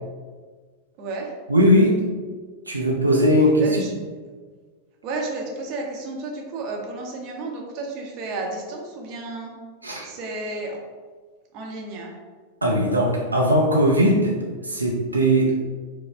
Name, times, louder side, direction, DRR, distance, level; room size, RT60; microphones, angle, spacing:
voice 1, 1.0-1.3 3.6-3.9 5.0-9.5 10.0-10.8 11.5-12.1, right 2 dB, 40° right, 0 dB, 0.7 m, -32 dB
voice 2, 1.5-2.0 2.7-3.7 9.8-10.1 12.6-14.4 14.6-15.7, equal, 80° right, -2 dB, 0.5 m, -19 dB
4.6 x 2.0 x 3.4 m, 1.5 s
figure-of-eight pair, 90°, 0 cm